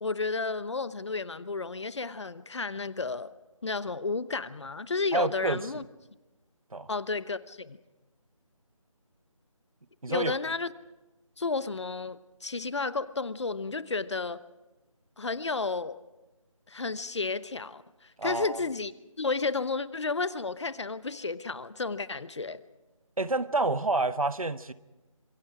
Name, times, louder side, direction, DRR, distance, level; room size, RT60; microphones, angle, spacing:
voice 1, 0.0-3.3 3.6-5.8 6.9-7.8 10.1-10.7 11.4-14.4 15.2-16.0 16.7-22.6, left 4 dB, 55° left, 0.9 m, -32 dB
voice 2, 5.1-5.7 6.7-6.9 10.0-10.3 18.2-18.6 23.2-24.7, right 2 dB, 80° right, 1.1 m, -28 dB
26.0 x 23.0 x 4.9 m
figure-of-eight pair, 160°, 18 cm